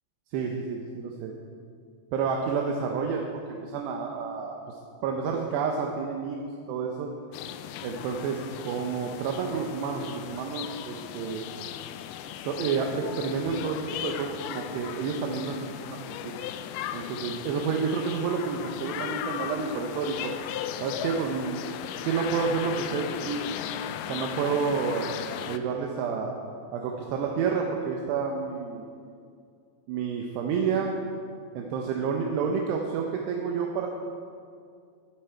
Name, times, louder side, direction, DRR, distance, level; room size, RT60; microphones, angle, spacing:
voice 1, 0.3-1.3 2.1-4.6 5.0-6.4 6.7-7.1 7.8-11.4 12.4-16.4 16.9-20.3 20.8-21.7 21.9-23.5 24.1-25.1 25.5-26.4 26.7-28.9 29.9-30.9 31.5-33.9, right 5 dB, 80° right, 1 dB, 2.9 m, -29 dB
sound 1, 7.3-25.6, left 10 dB, 90° left, 2.2 m, -37 dB
18.5 x 8.4 x 4.5 m, 2.3 s
omnidirectional pair, 5.0 m